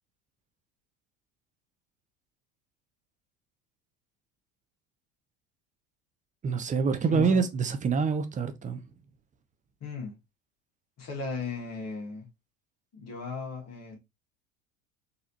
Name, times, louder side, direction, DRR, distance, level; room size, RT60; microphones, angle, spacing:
voice 1, 6.4-8.8, right 5 dB, 20° right, 0.5 m, -26 dB
voice 2, 7.1-7.5 9.8-10.1 11.0-12.3 12.9-14.0, left 4 dB, 40° left, 1.6 m, -36 dB
4.0 x 2.8 x 2.6 m
hypercardioid pair, 70°, 39 cm